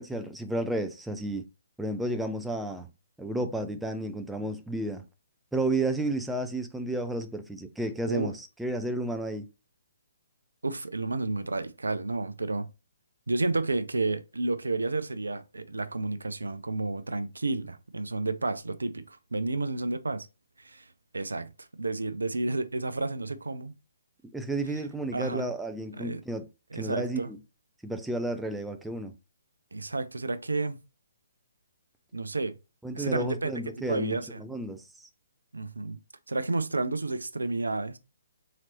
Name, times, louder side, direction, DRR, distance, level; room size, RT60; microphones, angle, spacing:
voice 1, 0.0-1.4 1.8-2.9 3.2-5.0 5.5-9.5 24.3-26.5 26.7-27.4 27.8-29.1 32.8-35.1, right 1 dB, 5° right, 0.4 m, -32 dB
voice 2, 10.6-12.7 13.3-20.3 20.6-20.9 21.1-23.7 24.7-24.8 25.1-25.5 25.9-26.2 26.7-27.3 29.7-30.8 32.1-32.5 32.9-34.4 35.5-36.0 36.3-38.0, right 3 dB, 80° right, 0.4 m, -31 dB
4.0 x 2.9 x 2.8 m
figure-of-eight pair, 135°, 0 cm